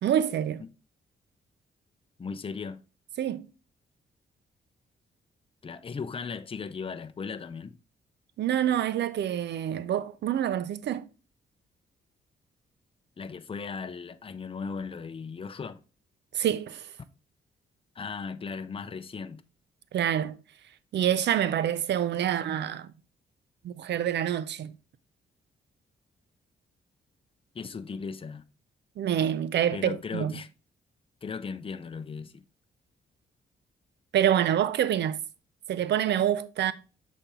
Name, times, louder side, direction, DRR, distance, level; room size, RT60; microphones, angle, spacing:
voice 1, 0.0-0.6 3.2-3.5 8.4-11.1 16.3-16.9 19.9-20.4 20.9-22.9 23.6-24.7 29.0-30.3 34.1-35.2 35.7-36.7, right 10 dB, 70° right, 0.6 m, -26 dB
voice 2, 2.2-2.8 5.6-7.8 13.2-15.8 18.0-19.4 27.5-28.4 29.7-30.5 31.2-32.4, left 5 dB, 30° left, 0.6 m, -37 dB
6.8 x 4.3 x 3.6 m
cardioid pair, 75°, 19 cm